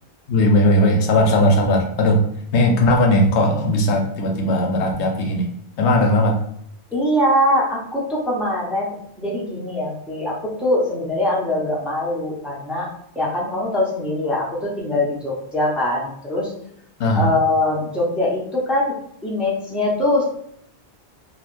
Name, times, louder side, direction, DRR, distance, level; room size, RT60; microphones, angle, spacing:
voice 1, 0.3-2.2 2.5-5.5 5.8-6.4 17.0-17.3, left 1 dB, 80° left, 3 dB, 0.9 m, -17 dB
voice 2, 6.9-12.9 13.1-16.5 17.1-18.9 19.2-20.2, left 1 dB, ahead, -5 dB, 0.6 m, -22 dB
3.4 x 2.4 x 2.5 m, 0.70 s
omnidirectional pair, 1.1 m